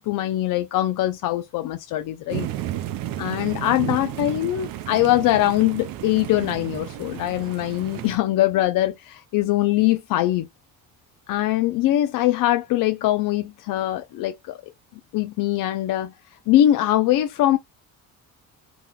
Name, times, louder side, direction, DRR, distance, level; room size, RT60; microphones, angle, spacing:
voice 1, 0.0-2.5 3.2-10.5 11.3-14.6 15.1-16.1 16.5-17.6, left 14 dB, 70° left, 0.5 m, -22 dB
sound 1, 2.3-8.2, right 13 dB, 75° right, 0.6 m, -32 dB
3.7 x 2.9 x 2.3 m
cardioid pair, 150°, 35 cm